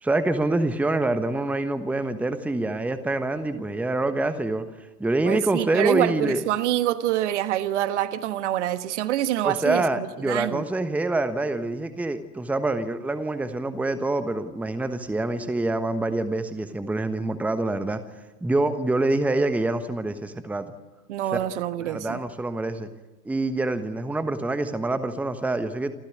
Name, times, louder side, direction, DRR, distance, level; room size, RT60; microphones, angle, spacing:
voice 1, 0.0-4.6 5.0-6.4 9.4-18.0 18.4-20.7 21.3-21.4 21.8-22.9 23.2-25.9, right 2 dB, 5° right, 1.2 m, -26 dB
voice 2, 5.2-10.6 21.1-22.2, right 12 dB, 50° right, 1.4 m, -26 dB
28.0 x 15.0 x 9.4 m
figure-of-eight pair, 100°, 46 cm